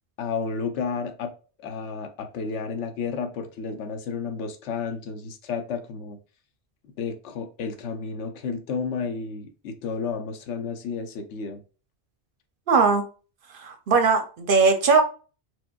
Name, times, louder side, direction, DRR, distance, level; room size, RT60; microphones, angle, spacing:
voice 1, 0.2-1.3 1.6-6.2 7.0-11.6, left 5 dB, 90° left, 6 dB, 0.9 m, -31 dB
voice 2, 12.7-13.1 13.5-15.0, right 4 dB, 60° right, 5 dB, 0.6 m, -20 dB
4.4 x 2.2 x 2.2 m, 0.36 s
omnidirectional pair, 1.2 m